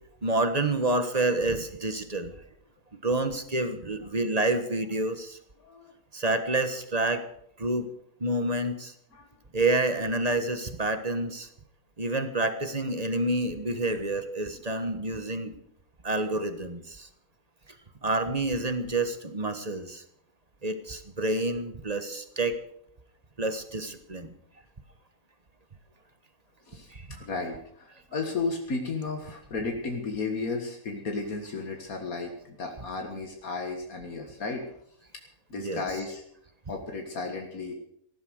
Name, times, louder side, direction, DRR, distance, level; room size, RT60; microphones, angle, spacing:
voice 1, 0.2-2.3 2.9-5.4 6.1-7.2 7.6-7.9 8.2-8.9 9.5-11.5 12.0-15.5 16.0-17.1 18.0-20.0 20.6-22.5 23.4-24.3 26.9-27.0 35.5-35.8, right 2 dB, 30° right, 9 dB, 1.4 m, -28 dB
voice 2, 5.6-5.9 9.1-9.3 26.7-34.7 35.5-36.2 36.7-37.7, left 3 dB, 75° left, 3 dB, 2.2 m, -34 dB
15.5 x 12.5 x 6.5 m, 0.72 s
omnidirectional pair, 1.5 m